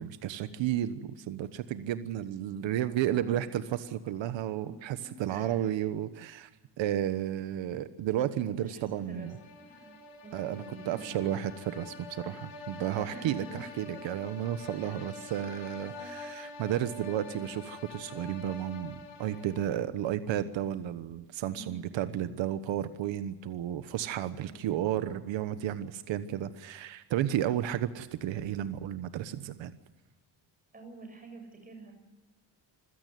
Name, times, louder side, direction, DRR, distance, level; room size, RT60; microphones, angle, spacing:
voice 1, 0.0-6.5 6.8-9.4 10.3-29.8, right 11 dB, 85° right, 12 dB, 1.2 m, -32 dB
voice 2, 2.8-3.4 4.6-4.7 5.0-5.7 8.5-9.3 9.8-10.0 10.2-11.4 13.0-14.1 14.7-16.2 21.5-22.1 24.4-24.9 30.7-31.9, right 2 dB, 20° right, 4 dB, 6.7 m, -49 dB
sound 1, 9.0-20.0, left 2 dB, 80° left, 4.3 m, -46 dB
26.0 x 16.5 x 9.3 m, 1.1 s
cardioid pair, 165°, 44 cm